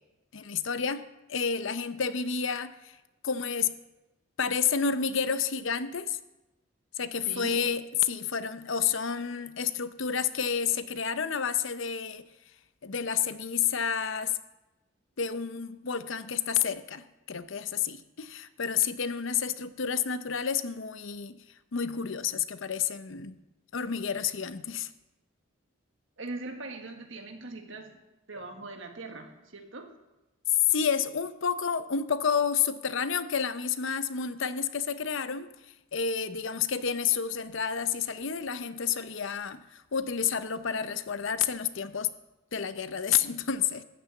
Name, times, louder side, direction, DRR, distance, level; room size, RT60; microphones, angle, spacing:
voice 1, 0.3-2.9 3.2-3.7 4.4-6.2 7.0-12.2 12.8-14.4 15.2-21.4 21.7-23.4 23.7-24.9 30.7-35.5 35.9-42.1 42.5-43.8, left 7 dB, 65° left, 0.6 m, -30 dB
voice 2, 7.3-7.6 26.2-28.0 28.3-29.9, right 2 dB, 65° right, 1.6 m, -41 dB
13.0 x 6.8 x 8.3 m
head